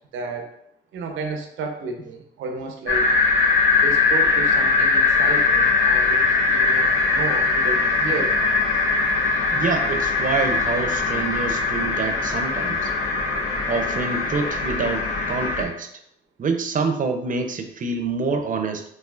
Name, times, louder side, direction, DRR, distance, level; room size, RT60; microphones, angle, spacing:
voice 1, 0.1-0.5 0.9-3.1 3.8-8.4, right 4 dB, 80° right, 4 dB, 0.8 m, -32 dB
sound 1, 2.9-15.6, left 4 dB, 90° left, 0.9 m, -21 dB
voice 2, 9.5-12.9 13.7-15.9 16.4-18.8, right 4 dB, 40° right, 6 dB, 0.6 m, -26 dB
5.6 x 3.0 x 2.4 m, 0.74 s
cardioid pair, 90°, 20 cm